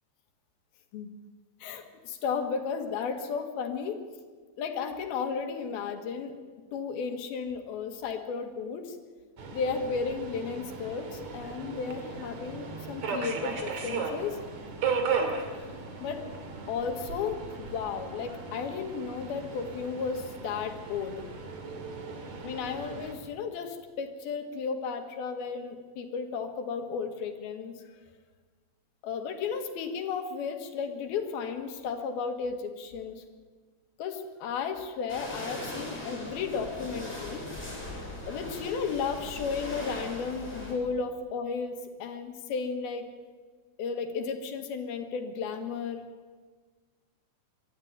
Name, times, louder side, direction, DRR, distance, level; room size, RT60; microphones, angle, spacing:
voice 1, 1.6-4.0 4.6-6.3 6.7-9.0 9.5-14.4 16.0-16.2 16.7-21.2 22.4-27.8 29.0-33.2 34.0-37.7 38.3-43.1 43.8-46.0, left 5 dB, 85° left, 6 dB, 3.5 m, -34 dB
Subway metro underground, 9.4-23.1, right 5 dB, 55° right, 3.3 m, -36 dB
sound 1, 35.1-40.7, left 1 dB, 15° left, 5.4 m, -39 dB
24.0 x 13.0 x 9.4 m, 1.5 s
omnidirectional pair, 4.2 m